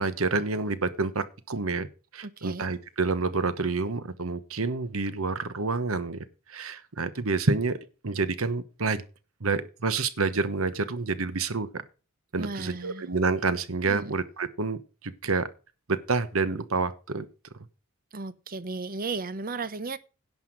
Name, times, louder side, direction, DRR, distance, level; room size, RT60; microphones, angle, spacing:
voice 1, 0.0-1.9 2.1-6.2 6.5-7.8 8.0-9.0 9.4-11.7 12.3-14.8 15.0-15.5 15.9-17.3, right 4 dB, 80° right, 1.2 m, -28 dB
voice 2, 2.2-2.7 12.4-13.1 13.9-14.1 18.1-20.0, right 3 dB, 45° right, 0.9 m, -35 dB
11.0 x 5.9 x 7.5 m
head